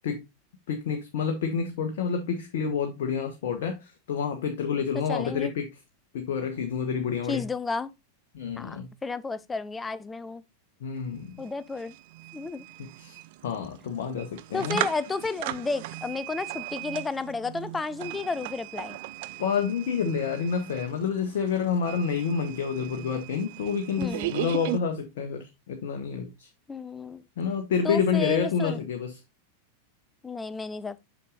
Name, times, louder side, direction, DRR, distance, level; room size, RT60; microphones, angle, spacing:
voice 1, 0.7-5.6 6.1-7.4 8.3-8.9 10.8-11.4 12.8-13.2 13.4-14.8 19.4-26.5 27.4-29.2, left 6 dB, 55° left, 1.2 m, -28 dB
voice 2, 5.1-5.5 7.3-7.9 8.6-10.4 11.4-11.9 12.3-12.7 14.5-19.0 24.0-24.4 26.7-27.2 27.8-28.8 30.2-31.0, left 4 dB, 10° left, 0.6 m, -32 dB
sound 1, 11.0-11.1 11.3-24.8, right 17 dB, 50° right, 0.4 m, -37 dB
8.5 x 6.2 x 2.4 m
figure-of-eight pair, 90°, 0 cm